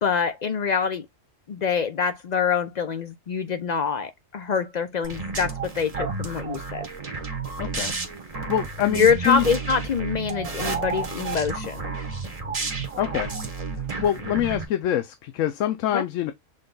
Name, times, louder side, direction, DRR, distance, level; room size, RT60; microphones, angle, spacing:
voice 1, 0.0-1.1 1.5-6.9 8.8-11.9 15.9-16.0, left 6 dB, 65° left, 0.4 m, -25 dB
sound 1, 5.0-14.7, right 4 dB, 30° right, 0.9 m, -31 dB
voice 2, 7.6-7.9 8.5-9.4 13.0-13.3 13.7-16.3, left 11 dB, 85° left, 1.0 m, -25 dB
6.4 x 2.2 x 3.7 m
omnidirectional pair, 1.3 m